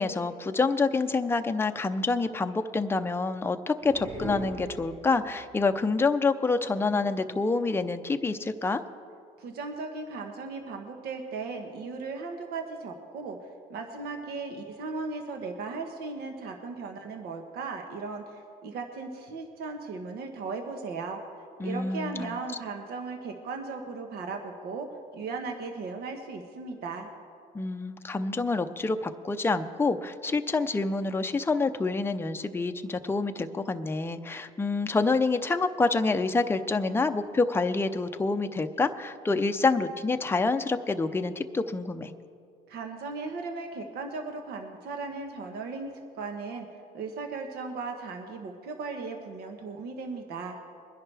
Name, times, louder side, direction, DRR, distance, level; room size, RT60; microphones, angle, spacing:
voice 1, 0.0-8.8 21.6-22.3 27.5-42.1, left 3 dB, 15° left, 7 dB, 0.6 m, -27 dB
sound 1, 3.8-5.4, right 1 dB, 50° right, 3.4 m, -39 dB
voice 2, 9.4-21.2 21.6-27.1 42.7-46.7 46.9-50.6, right 4 dB, 70° right, 4 dB, 1.2 m, -37 dB
22.0 x 10.5 x 3.4 m, 2.3 s
cardioid pair, 110°, 17 cm